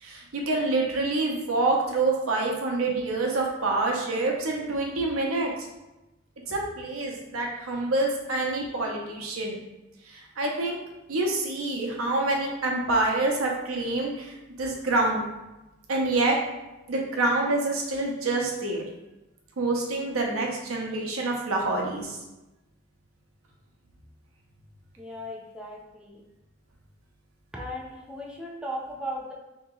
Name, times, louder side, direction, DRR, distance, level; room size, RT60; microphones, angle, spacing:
voice 1, 0.0-5.5 6.5-9.6 10.1-10.8 11.1-15.2 15.9-16.4 16.9-18.8 19.6-22.2, right 2 dB, 90° right, 0 dB, 0.7 m, -27 dB
voice 2, 25.0-26.2 27.5-29.3, equal, 5° right, -3 dB, 0.5 m, -37 dB
2.9 x 2.8 x 3.7 m, 1.0 s
head